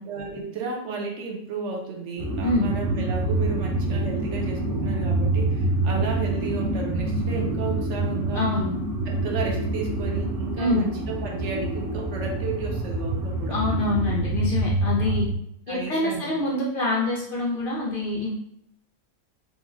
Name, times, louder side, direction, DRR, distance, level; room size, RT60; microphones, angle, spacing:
voice 1, 0.0-8.5 9.1-13.5 14.8-15.2 15.7-16.4, right 4 dB, 70° right, 1 dB, 0.9 m, -33 dB
sound 1, 2.2-15.3, right 2 dB, 25° right, 0.5 m, -26 dB
voice 2, 8.3-8.7 10.6-10.9 13.5-15.3 15.7-18.4, left 2 dB, 60° left, -4 dB, 0.6 m, -25 dB
3.0 x 2.0 x 3.5 m, 0.74 s
omnidirectional pair, 1.3 m